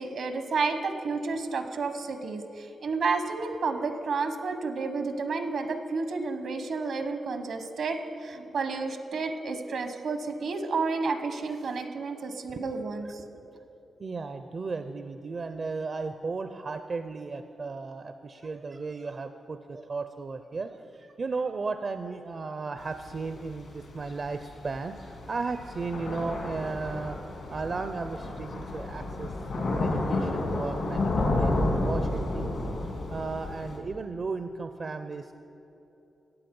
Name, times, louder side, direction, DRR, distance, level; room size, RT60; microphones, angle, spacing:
voice 1, 0.0-13.2, right 4 dB, 75° right, 8 dB, 1.0 m, -31 dB
voice 2, 14.0-29.3 29.7-32.5 33.1-35.3, right 4 dB, 50° right, 9 dB, 0.5 m, -35 dB
Thunder / Rain, 22.8-33.8, left 2 dB, 75° left, 2.3 m, -31 dB
15.0 x 8.5 x 5.3 m, 3.0 s
cardioid pair, 65°, 0 cm